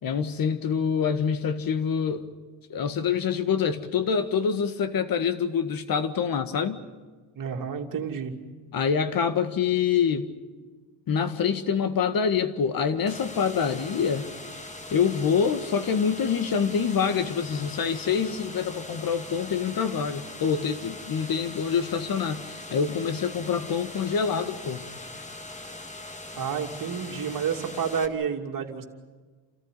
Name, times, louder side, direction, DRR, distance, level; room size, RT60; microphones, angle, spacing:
voice 1, 0.0-2.3 2.7-6.8 8.7-10.3 11.1-14.3 14.9-24.9, left 6 dB, 45° left, 1.8 m, -26 dB
voice 2, 7.4-8.3 26.4-28.8, right 7 dB, 45° right, 2.7 m, -30 dB
sound 1, 13.1-28.1, left 2 dB, 15° left, 1.7 m, -41 dB
28.5 x 14.0 x 10.0 m
cardioid pair, 100°, 46 cm